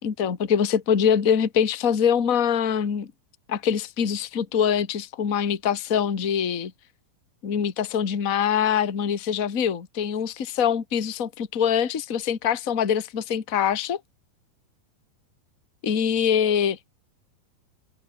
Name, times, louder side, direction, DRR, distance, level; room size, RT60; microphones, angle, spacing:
voice 1, 0.0-3.1 3.5-6.7 7.4-14.0 15.8-16.9, left 8 dB, 35° left, 1.4 m, -24 dB
omnidirectional pair, 4.4 m